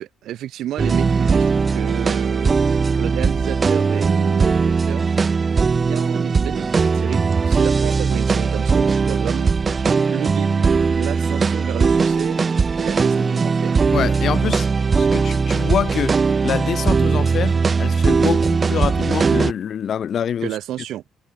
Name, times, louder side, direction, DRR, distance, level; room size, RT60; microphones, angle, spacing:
voice 1, 0.0-5.0 5.5-7.2 7.5-9.5 10.1-12.4 12.8-13.8 20.4-21.0, right 12 dB, 75° right, 6.6 m, -31 dB
sound 1, 0.8-19.5, right 5 dB, 30° right, 1.1 m, -19 dB
voice 2, 13.9-16.2 16.4-20.5, left 8 dB, 50° left, 4.9 m, -25 dB
cardioid pair, 140°, 0 cm